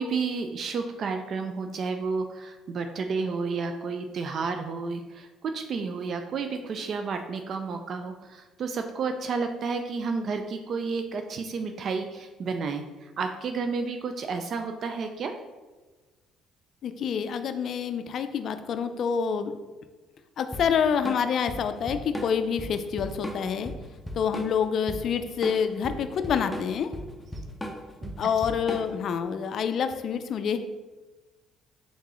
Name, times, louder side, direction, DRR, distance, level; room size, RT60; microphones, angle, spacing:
voice 1, 0.0-15.3 28.0-28.1, right 4 dB, 55° right, 6 dB, 0.3 m, -31 dB
voice 2, 16.8-19.5 20.4-23.7 24.1-26.9 28.2-30.6, left 7 dB, 60° left, 9 dB, 0.3 m, -27 dB
Drum kit / Drum, 20.5-29.1, equal, 10° left, 0.7 m, -37 dB
3.7 x 3.7 x 3.0 m, 1.3 s
supercardioid pair, 70°, 0 cm